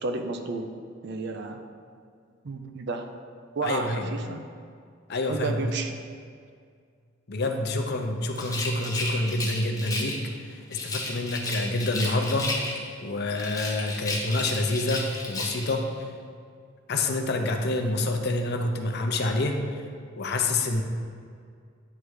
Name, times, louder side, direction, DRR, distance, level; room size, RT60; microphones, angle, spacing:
voice 1, 0.0-0.7 1.0-1.6 2.4-3.1 3.6-4.4 5.3-5.9, right 3 dB, 60° right, 6 dB, 0.5 m, -31 dB
voice 2, 3.6-4.1 5.1-5.7 7.3-10.2 10.4-16.1 16.9-19.6 20.2-20.8, left 2 dB, 55° left, 4 dB, 0.6 m, -27 dB
Rattle, 8.3-10.3 10.7-13.0 13.3-15.8, left 2 dB, 20° left, 0.9 m, -33 dB
9.2 x 3.3 x 4.8 m, 2.1 s
head